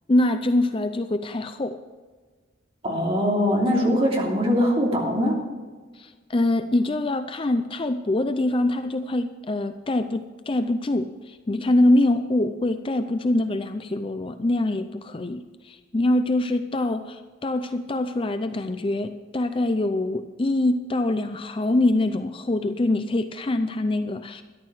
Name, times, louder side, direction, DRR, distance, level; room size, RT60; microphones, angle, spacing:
voice 1, 0.1-1.8 6.0-24.4, left 1 dB, 25° left, 9 dB, 0.5 m, -24 dB
voice 2, 2.8-5.4, equal, 30° right, -2 dB, 3.0 m, -22 dB
13.5 x 11.5 x 4.8 m, 1.4 s
head